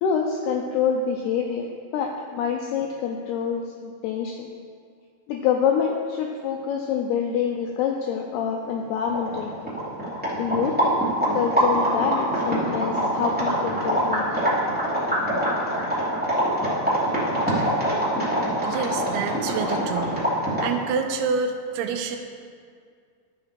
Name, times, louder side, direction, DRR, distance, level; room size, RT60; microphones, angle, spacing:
voice 1, 0.0-4.5 5.3-9.7 10.4-11.0 11.3-14.3, left 7 dB, 85° left, 2 dB, 2.3 m, -26 dB
sound 1, 8.8-8.9 9.1-20.8, right 1 dB, 5° right, 1.0 m, -24 dB
voice 2, 18.6-20.2 20.6-22.2, right 5 dB, 80° right, 4 dB, 2.3 m, -27 dB
12.5 x 6.1 x 5.1 m, 2.1 s
omnidirectional pair, 5.3 m